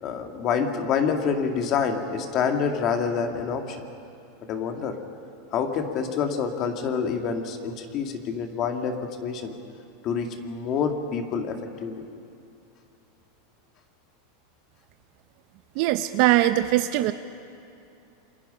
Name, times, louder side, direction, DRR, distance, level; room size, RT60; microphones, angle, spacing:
voice 1, 0.0-3.9 4.5-5.0 5.5-9.5 10.0-12.0, left 6 dB, 35° left, 5 dB, 2.2 m, -27 dB
voice 2, 15.8-17.1, right 14 dB, 50° right, 10 dB, 0.7 m, -21 dB
28.0 x 27.0 x 5.7 m, 2.7 s
supercardioid pair, 155°, 0 cm